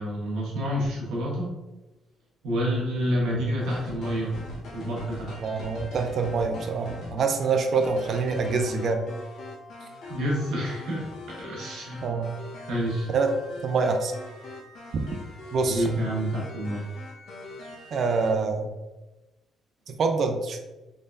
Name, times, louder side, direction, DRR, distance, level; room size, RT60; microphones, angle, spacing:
voice 1, 0.0-1.5 2.4-4.3 4.7-5.3 10.1-12.1 12.7-13.1 15.7-16.8, equal, 90° right, -4 dB, 1.3 m, -28 dB
sound 1, 3.6-18.3, left 2 dB, 75° left, 1.0 m, -43 dB
voice 2, 5.4-9.1 12.0-12.3 13.1-13.3 13.6-14.1 15.5-15.9 17.9-18.7 19.9-20.6, right 4 dB, 60° right, 5 dB, 0.5 m, -25 dB
3.8 x 3.3 x 2.6 m, 1.1 s
cardioid pair, 90°, 0 cm